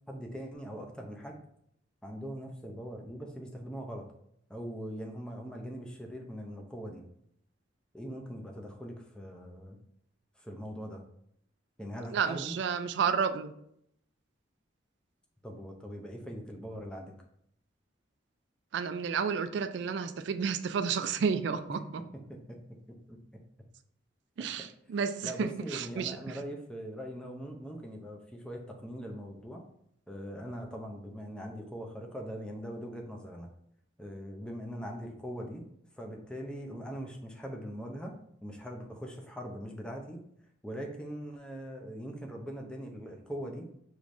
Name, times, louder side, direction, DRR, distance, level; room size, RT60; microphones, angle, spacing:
voice 1, 0.1-1.4 2.0-4.1 4.5-7.0 7.9-9.8 10.4-11.0 11.8-12.5 15.4-17.1 21.7-21.8 22.3-22.6 22.9-23.2 24.6-24.7 25.2-29.6 30.1-33.5 34.0-35.6 36.0-38.1 38.4-40.2 40.6-43.7, equal, 5° left, 1 dB, 0.5 m, -41 dB
voice 2, 12.1-13.5 18.7-21.8 24.4-26.2, right 6 dB, 65° right, 10 dB, 0.3 m, -31 dB
4.8 x 3.1 x 2.5 m, 0.71 s
head